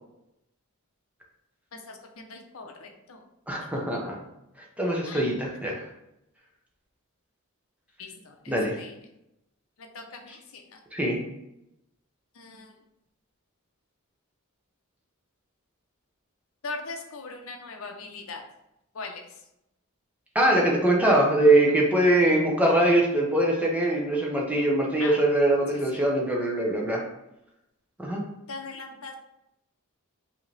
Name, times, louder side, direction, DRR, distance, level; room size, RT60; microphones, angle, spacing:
voice 1, 1.7-3.2 3.6-3.7 5.0-5.3 8.0-9.0 9.8-10.8 12.3-12.7 16.6-18.4 18.9-19.4 25.0-25.2 25.9-26.0 28.5-29.2, left 3 dB, 65° left, 3 dB, 0.7 m, -40 dB
voice 2, 3.5-4.1 4.8-5.8 8.5-8.8 10.9-11.2 20.3-27.0 28.0-28.2, right 1 dB, 5° right, -2 dB, 0.9 m, -22 dB
4.9 x 2.9 x 3.3 m, 0.85 s
head